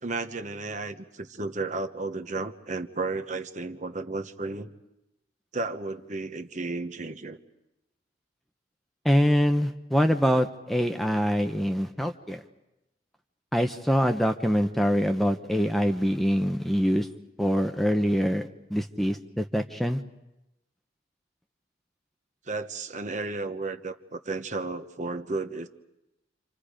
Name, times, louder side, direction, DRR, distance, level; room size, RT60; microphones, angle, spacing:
voice 1, 0.0-4.7 5.5-7.4 22.5-25.7, right 3 dB, 40° right, 8 dB, 1.1 m, -33 dB
voice 2, 9.0-12.4 13.5-17.1 17.4-18.4 18.7-20.0, equal, ahead, 6 dB, 0.7 m, -24 dB
29.5 x 26.5 x 5.1 m, 0.93 s
head